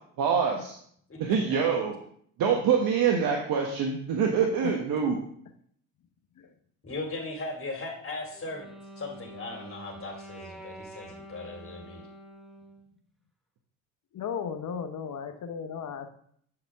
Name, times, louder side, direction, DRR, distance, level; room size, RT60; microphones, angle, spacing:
voice 1, 0.2-0.8 1.2-1.9 2.4-5.2, right 6 dB, 65° right, 1 dB, 1.1 m, -25 dB
voice 2, 6.8-8.7 9.0-12.1, left 2 dB, 35° left, 1 dB, 2.5 m, -38 dB
Wind instrument woodwind instrument, 8.3-12.9, right 1 dB, ahead, 1.2 m, -46 dB
voice 3, 14.1-16.1, left 7 dB, 50° left, 8 dB, 0.9 m, -35 dB
8.6 x 4.8 x 3.5 m, 0.63 s
supercardioid pair, 80°, 38 cm